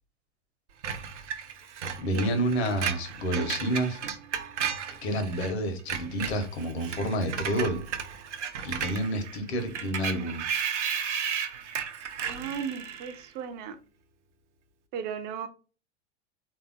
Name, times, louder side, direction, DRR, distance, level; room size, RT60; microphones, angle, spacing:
Screech, 0.8-5.5 5.8-13.2, right 7 dB, 70° right, 0.6 m, -34 dB
voice 1, 2.0-4.0 5.0-7.8 8.6-10.4, right 1 dB, 60° left, 1.0 m, -29 dB
voice 2, 12.3-13.8 14.9-15.5, right 7 dB, 30° right, 0.4 m, -35 dB
3.4 x 2.7 x 2.5 m
figure-of-eight pair, 85°, 36 cm